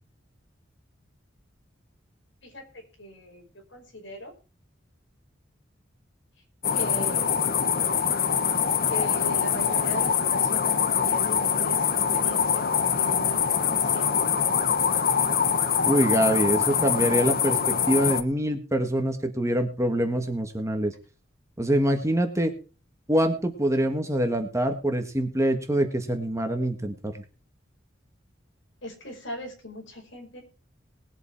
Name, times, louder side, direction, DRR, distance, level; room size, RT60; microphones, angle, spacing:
voice 1, 2.4-4.3 6.7-7.4 8.9-12.6 12.9-14.2 28.8-30.4, equal, 65° left, 3 dB, 5.3 m, -39 dB
sound 1, 6.6-18.2, left 7 dB, 50° left, 1.0 m, -24 dB
voice 2, 15.8-20.9 21.6-22.5 23.1-27.2, right 1 dB, 15° right, 6 dB, 1.6 m, -25 dB
20.0 x 8.0 x 4.5 m, 0.35 s
head